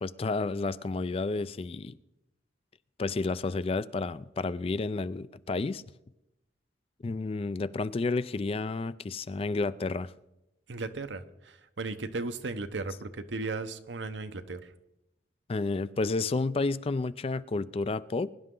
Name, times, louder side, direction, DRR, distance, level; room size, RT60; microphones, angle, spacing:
voice 1, 0.0-2.0 3.0-5.8 7.0-10.1 15.5-18.3, left 3 dB, 30° left, 0.4 m, -31 dB
voice 2, 10.7-14.7, right 3 dB, 80° right, 0.9 m, -36 dB
22.5 x 11.0 x 3.8 m
head